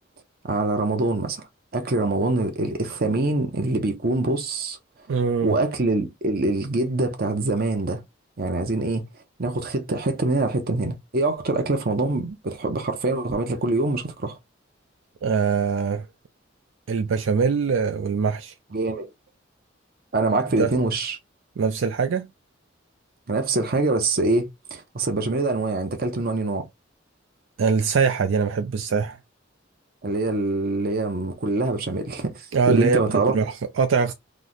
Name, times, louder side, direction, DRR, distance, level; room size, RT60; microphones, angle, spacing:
voice 1, 0.4-1.4 1.7-4.8 5.4-8.0 8.4-9.0 9.4-14.4 18.7-19.1 20.1-21.2 23.3-26.7 30.0-32.3 32.7-33.4, right 2 dB, 50° right, 0.7 m, -24 dB
voice 2, 5.1-5.5 15.2-16.1 16.9-18.5 20.6-20.8 21.6-22.3 27.6-29.2 32.5-33.0 33.3-34.1, right 5 dB, 80° right, 0.4 m, -22 dB
3.1 x 2.1 x 3.8 m
head